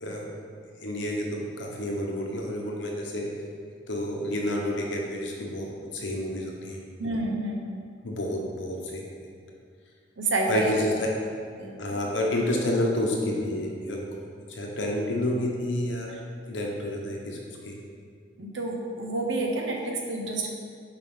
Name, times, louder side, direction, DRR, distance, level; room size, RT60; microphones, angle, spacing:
voice 1, 0.0-0.3 0.8-3.3 3.9-5.7 5.9-6.8 8.0-9.1 10.5-11.1 11.8-14.0 14.5-16.1 16.5-17.4 17.6-17.7, left 1 dB, 90° left, -1 dB, 1.0 m, -29 dB
voice 2, 7.0-7.7 10.2-10.8 11.6-12.0 18.4-20.5, right 2 dB, 90° right, 1 dB, 0.9 m, -29 dB
6.7 x 4.8 x 3.7 m, 2.2 s
head